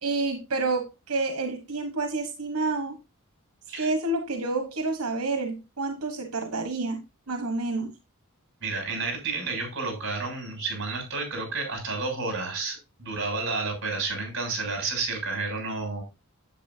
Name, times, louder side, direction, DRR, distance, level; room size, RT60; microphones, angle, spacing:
voice 1, 0.0-3.0 3.8-7.0 7.3-7.9, right 3 dB, 90° right, 5 dB, 1.2 m, -29 dB
voice 2, 8.6-16.0, right 3 dB, 55° right, 2 dB, 6.6 m, -31 dB
10.0 x 8.7 x 2.7 m, 0.26 s
head